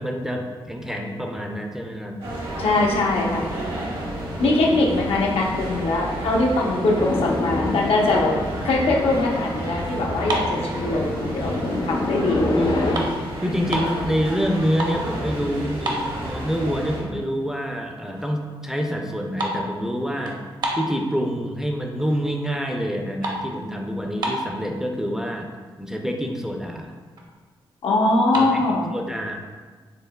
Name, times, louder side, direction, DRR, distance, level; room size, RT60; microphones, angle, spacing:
voice 1, 0.0-2.2 12.5-13.1 13.4-20.4 20.8-25.5 25.8-26.9 28.3-28.6 28.9-29.4, equal, 5° right, 2 dB, 0.4 m, -27 dB
sound 1, 2.2-17.0, right 1 dB, 75° right, 1.4 m, -31 dB
voice 2, 2.6-3.4 4.4-8.4 8.6-12.5 27.8-28.9, left 2 dB, 85° left, -1 dB, 0.7 m, -22 dB
sound 2, 7.0-13.0, left 2 dB, 50° left, 0.5 m, -28 dB
sound 3, 10.3-11.5 12.0-12.3 12.6-14.0 14.5-15.1 15.4-15.5 15.8-16.7 17.1-17.2 17.8-17.9 18.1-18.5 18.7-21.5 22.0-22.4 22.7-24.7 25.4-25.5 25.7-25.9 26.3-26.4 26.7-27.3 28.1-28.5, right 1 dB, 50° right, 0.7 m, -30 dB
5.6 x 3.5 x 2.2 m, 1.4 s
wide cardioid pair, 110°, 9 cm